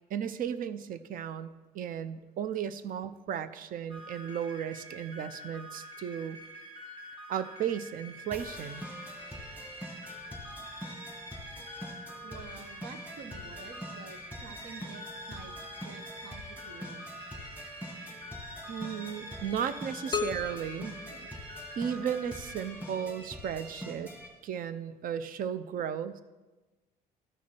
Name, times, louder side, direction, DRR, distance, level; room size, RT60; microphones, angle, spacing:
voice 1, 0.1-6.4 7.3-8.8 18.7-21.0 21.8-24.1 24.4-26.2, right 8 dB, 55° right, 13 dB, 0.5 m, -35 dB
sound 1, 3.9-22.7, equal, 30° right, 1.8 m, -47 dB
sound 2, 8.3-24.3, equal, 10° right, 2.0 m, -44 dB
voice 2, 12.2-15.6 15.8-17.1, right 5 dB, 75° right, 8 dB, 1.0 m, -49 dB
sound 3, 20.1-22.0, left 6 dB, 25° left, 0.4 m, -37 dB
13.0 x 4.6 x 4.4 m, 1.2 s
cardioid pair, 110°, 17 cm